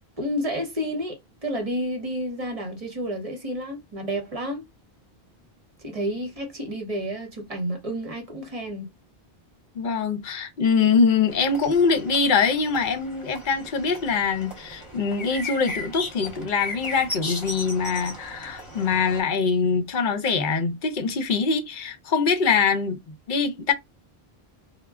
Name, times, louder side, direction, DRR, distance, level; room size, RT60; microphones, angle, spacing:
voice 1, 0.2-4.6 5.8-8.9, equal, 40° right, 0.9 m, -30 dB
voice 2, 9.7-23.0 23.3-23.7, left 5 dB, 55° left, 0.7 m, -23 dB
sound 1, 11.3-19.2, left 2 dB, 30° left, 1.0 m, -36 dB
2.1 x 2.1 x 3.5 m
omnidirectional pair, 1.0 m